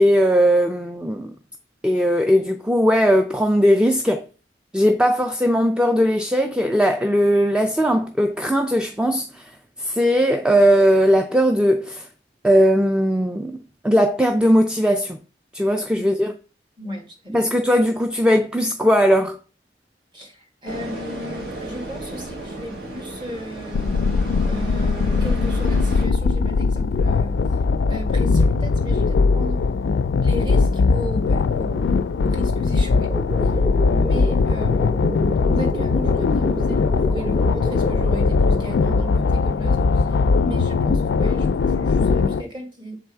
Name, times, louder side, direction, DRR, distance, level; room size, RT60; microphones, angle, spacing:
voice 1, 0.0-1.3 1.8-4.2 4.7-9.5 9.8-12.1 12.4-13.6 13.8-15.2 15.5-16.3 17.3-19.4, equal, 5° right, 0.4 m, -18 dB
voice 2, 16.8-17.5 20.1-23.8 24.5-27.4 27.9-29.7 30.2-33.1 33.4-43.0, equal, 25° right, 1.6 m, -34 dB
sound 1, 20.7-26.0, right 2 dB, 65° right, 1.4 m, -34 dB
sound 2, 23.7-42.4, left 4 dB, 90° left, 0.4 m, -20 dB
sound 3, 33.1-39.2, right 2 dB, 50° right, 2.5 m, -32 dB
7.5 x 3.6 x 4.5 m
head